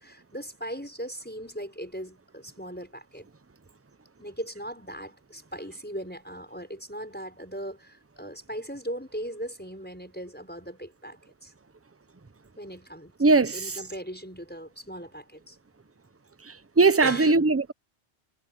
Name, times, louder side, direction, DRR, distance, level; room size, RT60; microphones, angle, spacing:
voice 1, 0.0-3.3 4.2-11.5 12.6-13.1 13.5-15.6 17.0-17.4, equal, 10° left, 5.9 m, -38 dB
voice 2, 13.2-13.8 16.4-17.7, right 3 dB, 15° right, 0.6 m, -21 dB
omnidirectional pair, 1.1 m